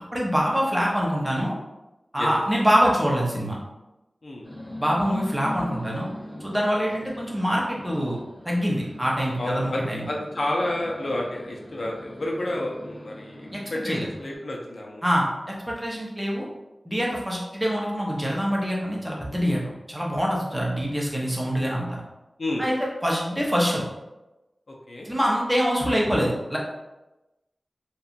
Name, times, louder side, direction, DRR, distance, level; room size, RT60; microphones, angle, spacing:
voice 1, 0.1-1.5 2.1-3.6 4.8-6.1 6.4-8.2 8.4-10.0 13.5-13.6 13.8-14.1 15.0-16.5 16.9-22.0 22.6-23.8 25.0-26.6, equal, 10° right, -3 dB, 0.6 m, -25 dB
sound 1, 4.4-14.4, left 1 dB, 25° left, 1.5 m, -41 dB
voice 2, 9.4-15.0 22.4-22.6 24.7-25.1, left 1 dB, 70° left, -2 dB, 0.5 m, -30 dB
2.8 x 2.2 x 2.4 m, 1.0 s
wide cardioid pair, 70°, 0 cm